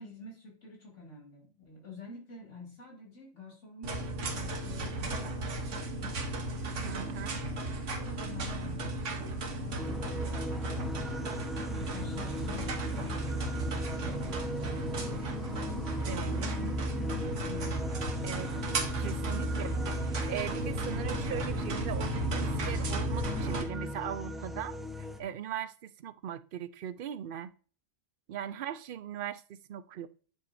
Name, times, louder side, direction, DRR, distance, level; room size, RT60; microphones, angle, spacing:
voice 1, 0.0-4.0 4.3-6.4 6.7-7.4 7.9-10.9 11.2-13.2 13.6-15.3 16.1-17.8 18.1-18.5 19.3-19.6, left 2 dB, 80° left, 2.9 m, -48 dB
sound 1, 3.8-23.6, right 2 dB, 80° right, 1.5 m, -35 dB
voice 2, 6.8-7.5 16.0-16.8 18.2-18.5 19.0-24.8 25.2-27.5 28.3-30.1, right 10 dB, 60° right, 0.6 m, -39 dB
sound 2, 9.8-25.2, equal, ahead, 0.7 m, -36 dB
10.0 x 6.9 x 2.6 m
omnidirectional pair, 1.2 m